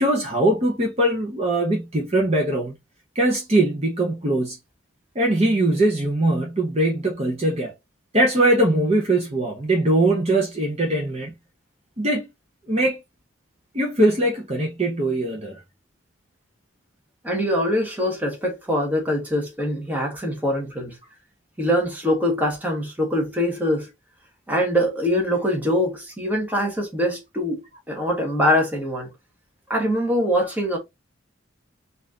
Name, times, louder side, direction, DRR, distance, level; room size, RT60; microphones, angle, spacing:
voice 1, 0.0-2.7 3.1-4.6 5.1-7.7 8.1-11.3 12.0-12.3 12.7-13.0 13.7-15.6, right 1 dB, 30° right, 1.0 m, -21 dB
voice 2, 17.2-21.0 21.6-23.9 24.5-27.6 27.9-29.1 29.7-30.8, equal, 10° right, 1.3 m, -23 dB
4.1 x 2.8 x 3.6 m
head